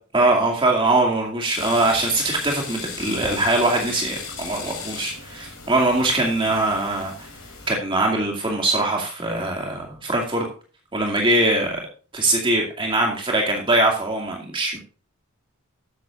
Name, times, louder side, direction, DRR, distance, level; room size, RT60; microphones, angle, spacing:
voice 1, 0.1-7.3 7.7-10.4 10.9-11.8 12.1-14.8, right 2 dB, 25° right, 0 dB, 2.3 m, -22 dB
sound 1, 1.5-7.7, left 5 dB, 60° left, 4.8 m, -36 dB
12.5 x 9.9 x 2.5 m, 0.37 s
head